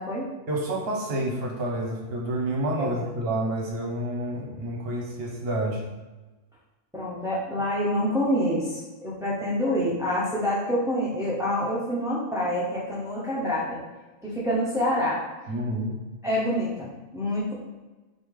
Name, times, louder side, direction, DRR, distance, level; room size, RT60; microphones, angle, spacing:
voice 1, 0.5-5.8 15.5-16.0, right 1 dB, 55° right, -2 dB, 1.0 m, -29 dB
voice 2, 6.9-13.8 14.2-15.5 16.2-17.5, equal, 5° right, -7 dB, 0.4 m, -27 dB
4.0 x 3.3 x 3.6 m, 1.2 s
omnidirectional pair, 1.3 m